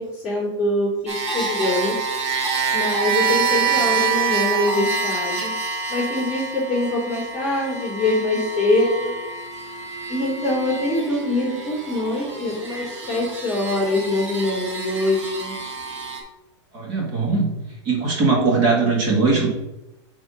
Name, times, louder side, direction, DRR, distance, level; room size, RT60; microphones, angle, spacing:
voice 1, 0.0-1.9 2.7-5.5 5.9-9.1 10.1-15.5, left 2 dB, 10° right, -14 dB, 2.5 m, -23 dB
sound 1, 1.1-16.2, right 5 dB, 65° right, 1.8 m, -27 dB
voice 2, 16.7-17.5 17.8-19.5, right 4 dB, 25° right, -2 dB, 1.5 m, -20 dB
6.1 x 3.6 x 5.4 m, 0.94 s
supercardioid pair, 175°, 16 cm